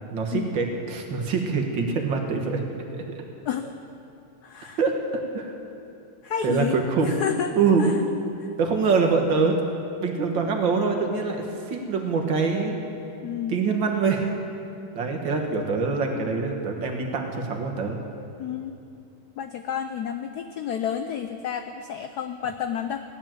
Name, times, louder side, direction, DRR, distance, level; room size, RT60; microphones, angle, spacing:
voice 1, 0.1-2.6 2.9-3.2 4.8-5.0 5.4-5.5 6.4-7.1 7.6-7.9 8.6-9.6 10.0-12.8 13.5-14.3 14.9-18.0, right 4 dB, 65° right, 2 dB, 2.1 m, -24 dB
voice 2, 4.4-4.8 6.2-7.5 7.8-8.0 8.4-8.5 13.2-13.6 18.4-18.8 19.4-23.0, left 8 dB, 85° left, 8 dB, 0.8 m, -30 dB
16.0 x 10.5 x 7.5 m, 2.6 s
omnidirectional pair, 2.3 m